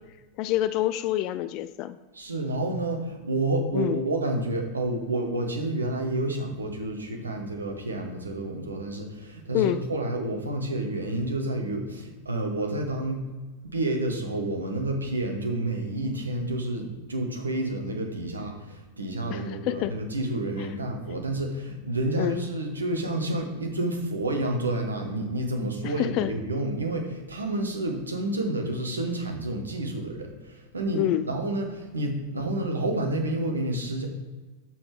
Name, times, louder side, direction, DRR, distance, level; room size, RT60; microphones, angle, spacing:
voice 1, 0.4-2.0 3.7-4.0 9.5-9.8 19.3-19.9 22.2-22.4 25.8-26.3 30.9-31.3, left 13 dB, 40° left, 13 dB, 0.3 m, -27 dB
voice 2, 2.1-13.3 13.6-34.1, right 1 dB, 75° right, 3 dB, 1.1 m, -29 dB
6.3 x 4.2 x 4.8 m, 1.2 s
figure-of-eight pair, 90°, 0 cm